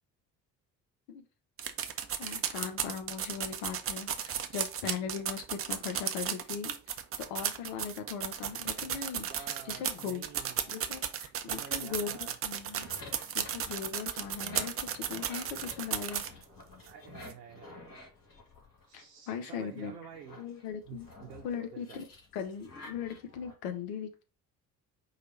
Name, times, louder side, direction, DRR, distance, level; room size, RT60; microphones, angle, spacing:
sound 1, 1.6-16.4 16.9-17.0 17.2-17.3, right 9 dB, 30° right, 0.5 m, -34 dB
voice 1, 2.2-6.7 7.3-10.2 10.7-12.9 13.3-16.2 18.9-19.9 20.4-21.1 21.4-22.0 22.3-24.2, left 7 dB, 60° left, 1.0 m, -39 dB
voice 2, 8.5-10.7 11.4-12.3 16.8-18.0 18.9-20.4 20.9-22.0, right 8 dB, 70° right, 0.8 m, -50 dB
sound 2, 12.5-19.2 19.6-23.5, left 3 dB, 40° left, 2.2 m, -51 dB
4.8 x 2.4 x 4.4 m
figure-of-eight pair, 50°, 49 cm